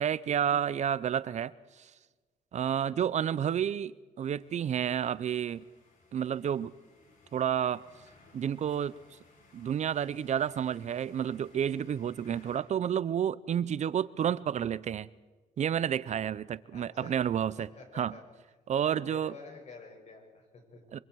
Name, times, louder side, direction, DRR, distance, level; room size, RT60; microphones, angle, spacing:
voice 1, 0.0-1.9 2.5-5.6 6.1-6.7 7.3-7.8 8.3-8.9 9.5-15.1 15.6-17.7 17.9-18.2 18.7-19.3 20.9-21.0, right 9 dB, 55° right, 0.7 m, -30 dB
sound 1, 4.2-12.6, left 3 dB, 75° left, 7.6 m, -61 dB
voice 2, 16.7-17.2 17.6-18.2 18.8-20.8, left 4 dB, 55° left, 6.7 m, -50 dB
24.5 x 24.5 x 4.8 m
cardioid pair, 95°, 14 cm